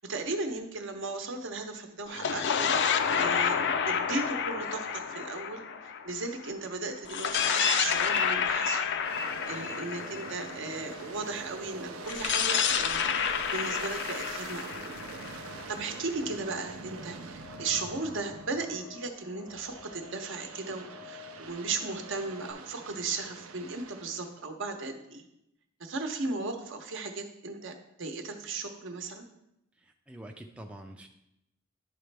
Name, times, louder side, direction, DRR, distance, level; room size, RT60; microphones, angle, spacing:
voice 1, 0.0-2.7 3.2-5.6 6.0-8.8 9.5-15.0 15.7-25.2 25.8-29.2, right 3 dB, 65° right, 5 dB, 0.8 m, -36 dB
sound 1, 2.1-6.5 7.1-11.0 12.1-15.9, left 7 dB, 60° left, 0.4 m, -29 dB
sound 2, 8.7-22.5, left 5 dB, 90° left, 1.2 m, -51 dB
Aircraft, 9.0-19.0 19.5-24.4, right 4 dB, 85° right, 0.5 m, -45 dB
voice 2, 29.8-31.1, right 1 dB, 5° right, 2 dB, 0.4 m, -46 dB
11.0 x 4.1 x 3.3 m, 0.82 s
head